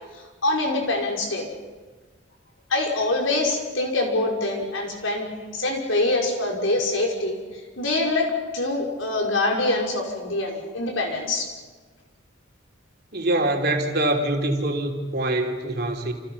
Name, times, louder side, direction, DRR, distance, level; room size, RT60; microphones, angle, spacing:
voice 1, 0.4-1.5 2.7-5.3 5.5-7.4 7.8-11.5, left 2 dB, 85° left, 1 dB, 5.8 m, -24 dB
voice 2, 13.1-16.1, right 1 dB, 55° right, 2 dB, 3.4 m, -24 dB
29.0 x 28.5 x 5.7 m, 1.4 s
head